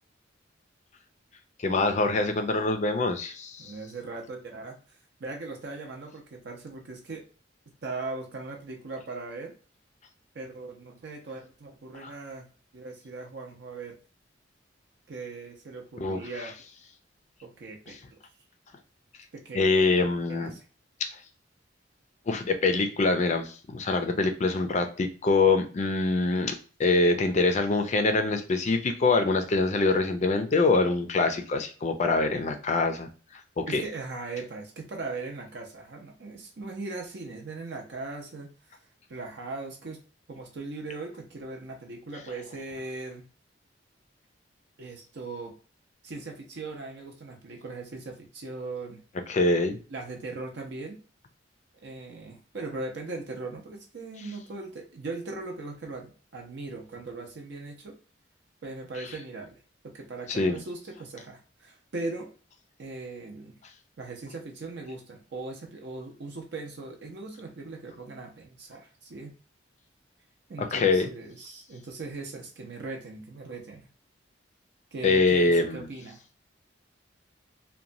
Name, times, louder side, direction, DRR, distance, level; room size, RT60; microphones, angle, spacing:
voice 1, 1.6-3.7 11.9-12.1 16.0-16.2 19.5-20.5 22.3-33.1 33.7-33.8 49.3-49.8 60.3-60.6 70.6-71.1 75.0-75.9, left 3 dB, 35° left, 7 dB, 0.4 m, -24 dB
voice 2, 3.6-7.2 7.8-9.5 10.3-12.5 12.7-14.0 15.1-16.5 17.4-18.2 19.3-19.7 20.3-20.6 33.7-38.8 39.1-40.0 40.3-43.2 44.8-45.6 46.0-49.0 49.9-51.0 51.8-57.9 58.6-59.6 59.8-62.3 62.8-63.5 64.0-69.3 70.5-73.9 74.9-76.2, right 3 dB, 60° right, 1 dB, 0.6 m, -39 dB
2.9 x 2.2 x 2.5 m, 0.37 s
head